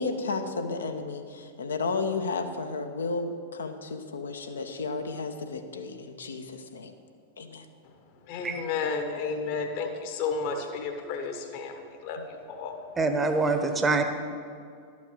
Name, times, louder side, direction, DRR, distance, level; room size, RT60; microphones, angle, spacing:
voice 1, 0.0-6.9 7.4-7.6, left 3 dB, 70° left, 6 dB, 0.9 m, -33 dB
voice 2, 8.3-12.9, left 5 dB, 45° left, 5 dB, 1.2 m, -32 dB
voice 3, 13.0-14.0, right 3 dB, 15° right, 6 dB, 1.0 m, -25 dB
12.0 x 6.3 x 7.2 m, 2.3 s
figure-of-eight pair, 90°, 0 cm